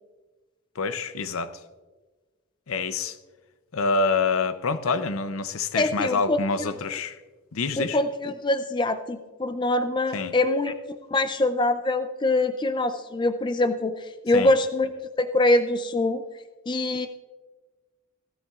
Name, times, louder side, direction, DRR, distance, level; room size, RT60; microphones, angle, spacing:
voice 1, 0.8-1.5 2.7-3.2 3.7-7.2 7.5-8.0 10.1-10.3 14.3-14.5, left 4 dB, 75° left, 11 dB, 0.6 m, -26 dB
voice 2, 5.7-6.7 7.8-10.7 11.1-14.9 15.2-16.2 16.7-17.1, left 2 dB, 20° left, 9 dB, 0.4 m, -24 dB
17.0 x 12.5 x 2.4 m, 1.3 s
head